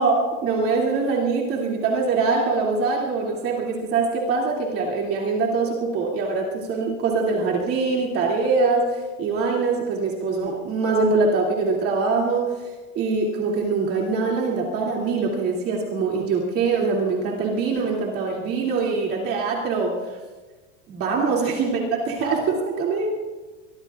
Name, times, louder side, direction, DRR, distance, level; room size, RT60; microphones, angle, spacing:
voice 1, 0.0-20.2 20.9-23.1, right 4 dB, 35° right, -3 dB, 2.6 m, -23 dB
24.5 x 22.5 x 2.4 m, 1.3 s
supercardioid pair, 170°, 39 cm